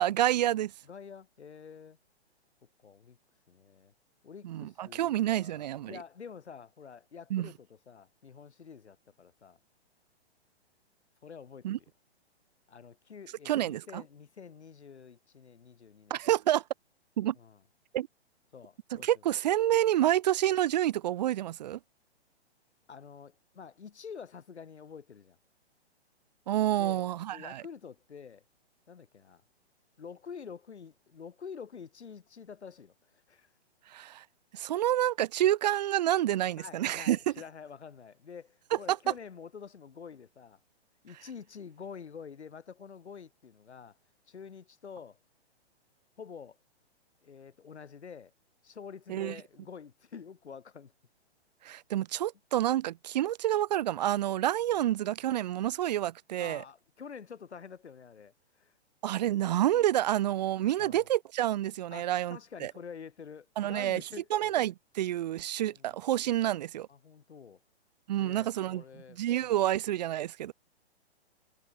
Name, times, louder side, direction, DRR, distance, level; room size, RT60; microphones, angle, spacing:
voice 1, 0.0-0.7 4.4-6.0 7.3-7.5 11.6-11.8 13.5-14.0 16.1-16.6 17.2-17.4 17.9-18.1 18.9-21.8 26.5-27.6 33.9-34.2 34.5-37.3 49.1-49.3 51.6-56.6 59.0-62.7 63.6-64.0 64.3-66.9 68.1-68.8 69.2-70.5, right 13 dB, 40° right, 0.4 m, -28 dB
voice 2, 0.8-2.0 2.8-3.2 3.5-3.9 4.2-9.6 11.2-11.8 12.7-16.2 17.4-17.6 18.5-19.1 22.9-25.4 26.8-28.4 28.9-29.4 30.0-33.5 36.5-40.6 41.0-44.0 44.3-45.2 46.2-46.6 47.2-48.3 48.6-50.9 56.4-58.7 59.3-59.6 60.8-61.1 61.9-64.5 65.7-66.0 66.9-67.6 68.2-69.5, left 6 dB, 90° left, 1.5 m, -48 dB
hypercardioid pair, 135°, 33 cm